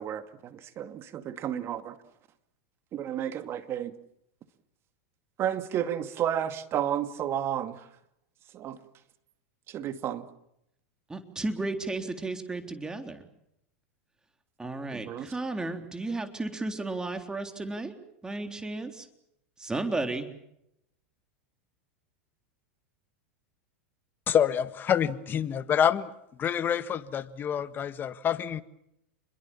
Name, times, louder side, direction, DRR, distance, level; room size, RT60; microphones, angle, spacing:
voice 1, 0.0-2.0 2.9-3.9 5.4-7.9 8.5-8.8 9.7-10.3 14.9-15.3, right 10 dB, 35° right, 2.4 m, -32 dB
voice 2, 11.1-13.2 14.6-19.1 19.6-20.3, right 2 dB, 10° right, 3.6 m, -33 dB
voice 3, 24.3-26.1 26.4-28.6, left 9 dB, 30° left, 1.6 m, -27 dB
29.5 x 22.5 x 7.3 m
hypercardioid pair, 120°, 7 cm